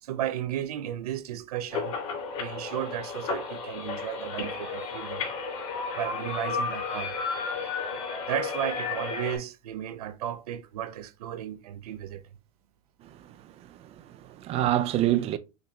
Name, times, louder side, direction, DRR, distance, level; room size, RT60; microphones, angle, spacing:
voice 1, 0.0-2.0 2.4-5.2 5.9-7.1 8.3-12.2, right 11 dB, 80° right, 0.6 m, -34 dB
sound 1, 1.7-9.4, left 5 dB, 75° left, 2.6 m, -33 dB
voice 2, 13.7-15.4, right 13 dB, 30° right, 0.4 m, -26 dB
6.4 x 2.9 x 2.2 m
hypercardioid pair, 120°, 19 cm